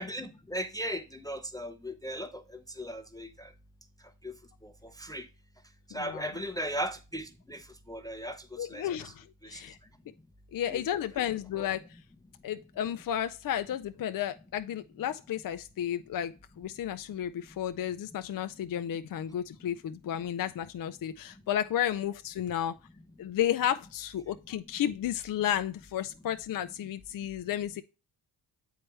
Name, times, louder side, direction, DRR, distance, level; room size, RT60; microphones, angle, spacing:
voice 1, 0.0-3.5 4.2-4.3 4.6-5.3 5.9-9.1 9.4-9.6 10.7-10.8 11.2-11.3 11.5-11.7 22.6-22.7, equal, 10° left, 0.6 m, -38 dB
voice 2, 8.6-9.8 10.5-11.8 12.4-22.8 23.2-27.8, left 10 dB, 45° left, 0.5 m, -32 dB
7.5 x 4.6 x 3.3 m
cardioid pair, 65°, 46 cm